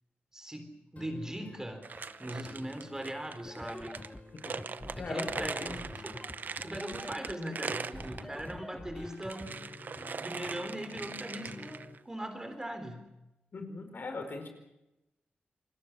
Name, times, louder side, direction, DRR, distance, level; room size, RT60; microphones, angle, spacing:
voice 1, 0.3-1.9 2.2-4.0 5.0-6.2 6.6-9.6 10.2-13.1, right 1 dB, 15° right, 7 dB, 3.9 m, -40 dB
sound 1, 1.0-12.0, left 2 dB, 45° left, 4.2 m, -52 dB
sound 2, 1.8-8.6 9.0-12.0, right 5 dB, 55° right, 0.8 m, -41 dB
sound 3, 3.5-9.5, left 1 dB, 10° left, 0.9 m, -45 dB
voice 2, 4.9-5.8 13.5-14.5, left 3 dB, 60° left, 5 dB, 4.7 m, -39 dB
28.5 x 21.0 x 6.2 m, 0.94 s
wide cardioid pair, 90°, 4 cm